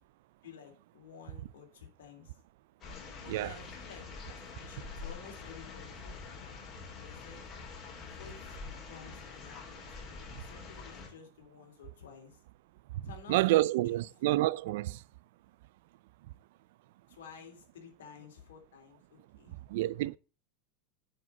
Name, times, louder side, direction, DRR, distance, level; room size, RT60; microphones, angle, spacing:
voice 1, 0.4-2.3 3.2-6.6 7.0-7.5 8.0-12.4 13.0-14.0 17.1-19.6, left 6 dB, 90° left, 3.0 m, -53 dB
sound 1, 2.8-11.1, left 4 dB, 35° left, 3.4 m, -46 dB
voice 2, 13.3-15.0 19.7-20.2, right 17 dB, 70° right, 0.4 m, -28 dB
9.8 x 4.9 x 5.5 m
supercardioid pair, 120°, 0 cm